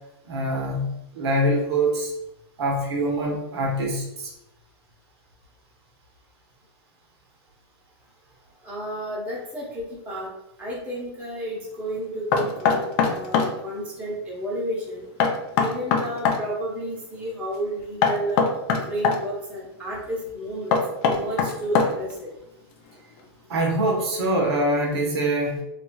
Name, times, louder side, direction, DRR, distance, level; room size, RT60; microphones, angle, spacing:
voice 1, 0.2-2.1 2.6-4.3 23.5-25.6, right 1 dB, 70° right, 0 dB, 0.9 m, -24 dB
voice 2, 8.6-10.3 10.6-15.0 15.5-18.4 18.9-22.3, right 1 dB, 10° right, -6 dB, 0.9 m, -32 dB
Knock, 12.3-13.5 15.2-16.4 18.0-19.2 20.7-22.1, left 5 dB, 35° left, 0.4 m, -21 dB
3.1 x 2.6 x 2.3 m, 0.87 s
supercardioid pair, 155°, 14 cm